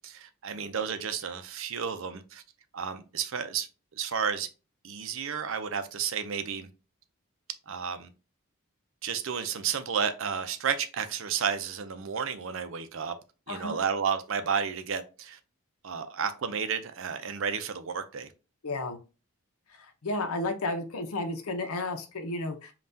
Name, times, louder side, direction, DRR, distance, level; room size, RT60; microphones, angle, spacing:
voice 1, 0.0-2.4 2.7-3.7 4.0-4.5 4.8-6.7 7.7-8.1 9.0-13.1 13.5-15.4 15.8-18.3, right 7 dB, 60° right, 0.5 m, -32 dB
voice 2, 13.5-13.8 18.6-19.0 20.0-22.7, left 2 dB, 75° left, 0.7 m, -32 dB
5.4 x 2.4 x 2.7 m
head